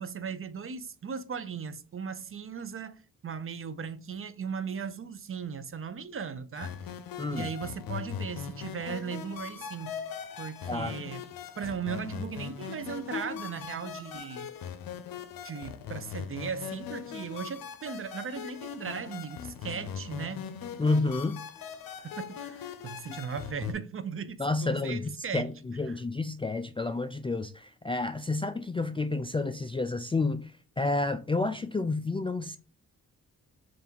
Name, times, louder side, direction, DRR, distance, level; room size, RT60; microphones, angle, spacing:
voice 1, 0.0-6.8 7.3-10.1 10.4-11.3 11.6-14.5 15.4-20.4 22.0-25.5 25.9-26.0, right 6 dB, 40° right, 0.5 m, -37 dB
sound 1, 6.6-23.7, left 8 dB, 70° left, 0.6 m, -40 dB
voice 2, 7.2-7.5 10.7-10.9 20.8-21.4 24.4-25.0 25.3-30.5 30.8-32.6, left 3 dB, 15° left, 0.3 m, -30 dB
3.3 x 2.6 x 4.4 m
supercardioid pair, 50°, 35 cm